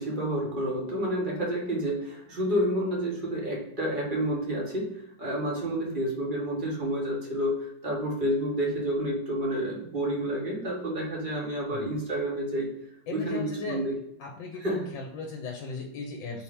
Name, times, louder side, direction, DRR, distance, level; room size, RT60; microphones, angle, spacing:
voice 1, 0.0-4.9 5.2-12.7 13.1-13.9 14.6-14.9, equal, 30° right, -3 dB, 1.0 m, -29 dB
voice 2, 13.1-13.8 14.2-16.4, left 4 dB, 70° left, 0 dB, 1.4 m, -37 dB
4.5 x 2.8 x 3.5 m, 0.79 s
omnidirectional pair, 2.3 m